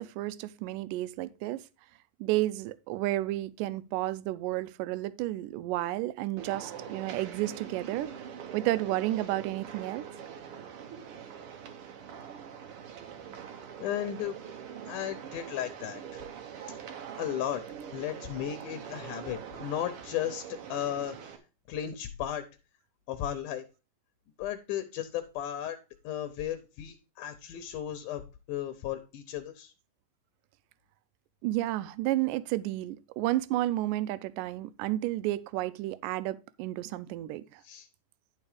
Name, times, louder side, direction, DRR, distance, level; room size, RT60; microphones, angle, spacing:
voice 1, 0.0-1.6 2.2-8.1 8.5-10.1 31.4-37.6, right 16 dB, 85° right, 2.2 m, -31 dB
sound 1, 6.4-21.4, right 8 dB, 65° right, 1.4 m, -43 dB
voice 2, 13.8-14.4 14.9-16.0 16.6-16.8 17.2-17.6 17.9-21.2 21.7-22.5 23.1-23.6 24.4-25.8 26.0-28.2 28.5-29.7 37.6-37.9, left 11 dB, 75° left, 2.2 m, -35 dB
10.5 x 4.8 x 4.9 m
omnidirectional pair, 3.8 m